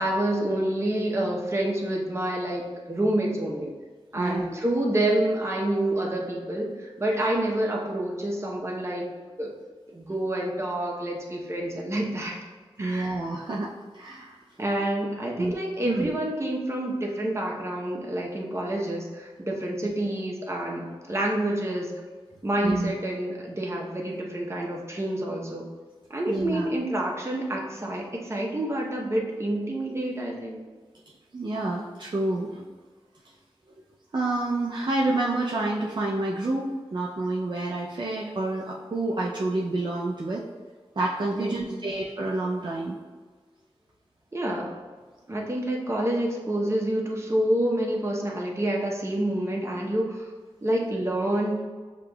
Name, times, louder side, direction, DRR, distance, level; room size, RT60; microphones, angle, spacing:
voice 1, 0.0-3.7 4.1-9.1 9.4-9.6 9.9-12.4 12.8-13.2 14.6-21.9 22.4-25.7 26.1-30.7 41.3-41.9 44.3-44.7 45.3-50.3 50.6-51.6, right 1 dB, 25° right, -2 dB, 0.8 m, -28 dB
voice 2, 12.8-14.4 15.4-15.5 15.8-16.1 22.6-22.9 26.3-26.7 31.3-32.6 34.1-40.4 40.9-43.0, right 2 dB, 50° right, -4 dB, 0.5 m, -28 dB
6.8 x 3.0 x 2.3 m, 1.4 s
wide cardioid pair, 70°, 10 cm